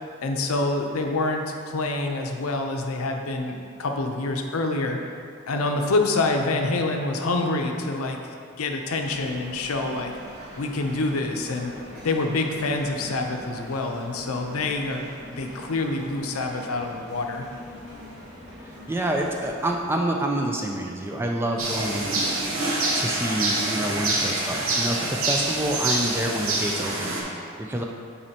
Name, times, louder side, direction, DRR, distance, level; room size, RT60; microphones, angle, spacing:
voice 1, 0.2-5.0 5.5-8.2 8.6-10.1 10.6-11.7 12.0-15.0 15.3-17.4, left 2 dB, 85° left, 3 dB, 0.6 m, -26 dB
sound 1, 9.0-19.8, equal, 50° right, 1.3 m, -43 dB
voice 2, 18.6-22.2 22.9-27.8, right 1 dB, 10° right, 1 dB, 0.3 m, -28 dB
sound 2, 21.6-27.2, right 2 dB, 75° right, 0.9 m, -26 dB
8.8 x 4.2 x 2.8 m, 2.4 s
head